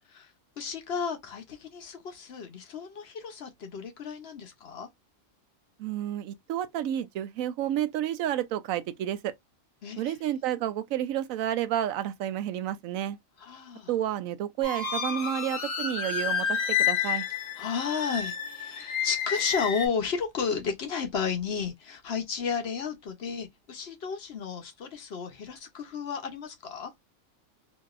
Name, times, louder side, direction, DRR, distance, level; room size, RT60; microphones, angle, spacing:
voice 1, 0.6-4.9 9.8-10.2 13.4-13.9 17.6-26.9, left 6 dB, 55° left, 0.9 m, -33 dB
voice 2, 5.8-9.3 10.0-13.2 13.9-17.3, right 11 dB, 90° right, 1.0 m, -30 dB
sound 1, 14.6-19.9, left 7 dB, 75° left, 1.2 m, -30 dB
3.0 x 2.7 x 2.4 m
omnidirectional pair, 1.4 m